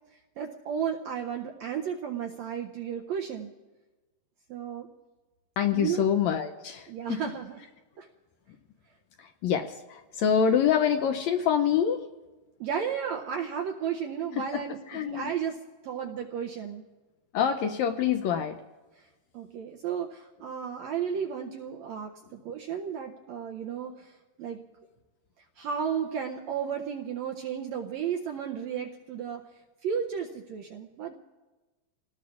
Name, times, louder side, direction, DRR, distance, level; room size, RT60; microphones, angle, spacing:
voice 1, 0.4-3.5 4.5-4.9 5.7-6.0 6.9-7.6 8.0-8.1 12.6-15.6 15.8-16.8 19.0-19.1 19.3-24.6 25.6-29.4 29.8-31.1, right 7 dB, 80° right, 2 dB, 1.6 m, -33 dB
voice 2, 5.6-7.2 9.2-12.1 14.4-14.6 14.9-15.3 17.3-18.6, left 8 dB, 80° left, 6 dB, 1.6 m, -26 dB
29.5 x 18.5 x 2.4 m, 1.2 s
omnidirectional pair, 3.8 m